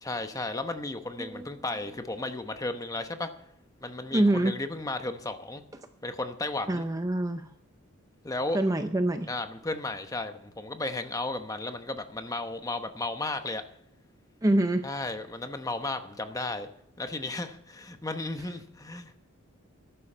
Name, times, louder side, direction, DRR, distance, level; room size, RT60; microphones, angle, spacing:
voice 1, 0.0-3.3 3.8-5.6 6.0-6.9 8.2-8.6 9.3-13.6 14.8-16.7 17.0-19.1, left 2 dB, 15° left, 8 dB, 0.9 m, -34 dB
voice 2, 1.2-1.5 4.1-4.6 6.7-7.5 8.5-9.3 14.4-14.9, right 1 dB, 15° right, 8 dB, 0.5 m, -25 dB
14.0 x 11.5 x 4.5 m, 0.73 s
head